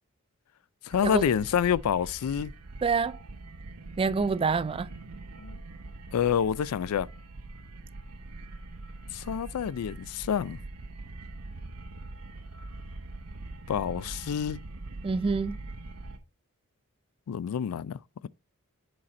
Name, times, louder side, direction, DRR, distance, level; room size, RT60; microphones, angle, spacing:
voice 1, 0.8-2.5 5.4-5.6 6.1-7.1 9.1-10.6 13.7-14.6 17.3-18.3, left 8 dB, 75° left, 0.3 m, -28 dB
sound 1, 0.9-16.2, right 2 dB, 85° right, 0.9 m, -43 dB
voice 2, 2.8-3.2 4.0-4.9 15.0-15.6, right 4 dB, 25° right, 0.3 m, -27 dB
7.6 x 4.2 x 4.1 m
head